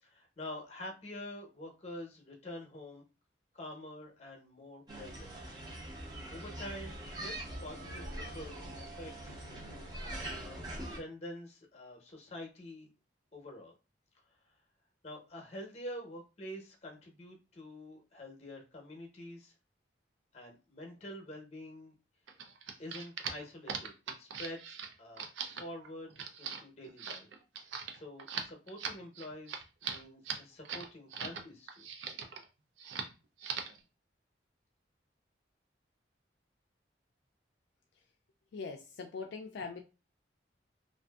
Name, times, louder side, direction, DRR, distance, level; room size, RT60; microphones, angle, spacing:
voice 1, 0.0-3.0 3.5-5.3 6.3-9.5 10.0-12.9 13.3-13.7 15.0-19.5 20.3-21.9 22.8-23.9 24.2-25.2 25.5-27.3 27.9-31.9, left 1 dB, 35° left, 2 dB, 0.7 m, -47 dB
sound 1, 4.9-11.0, right 1 dB, 25° right, 0.6 m, -43 dB
sound 2, 22.3-31.4 31.7-32.4 32.8-33.1 33.4-33.8, right 6 dB, 80° right, 0.4 m, -40 dB
voice 2, 38.5-39.8, left 4 dB, 70° left, 2 dB, 0.3 m, -41 dB
2.5 x 2.5 x 2.3 m, 0.30 s
head